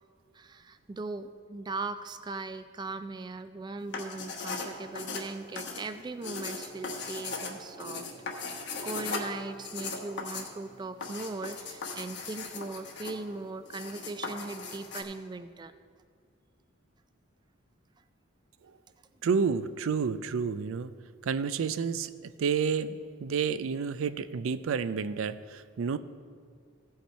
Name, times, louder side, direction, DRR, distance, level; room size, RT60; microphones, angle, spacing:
voice 1, 0.3-8.1 8.3-15.7, right 3 dB, 20° right, 11 dB, 0.3 m, -39 dB
sound 1, 3.8-15.0, left 4 dB, 60° left, 1.2 m, -38 dB
voice 2, 19.2-20.9 21.2-22.1 22.4-26.0, right 6 dB, 90° right, 14 dB, 0.4 m, -30 dB
16.0 x 5.6 x 4.4 m, 2.1 s
head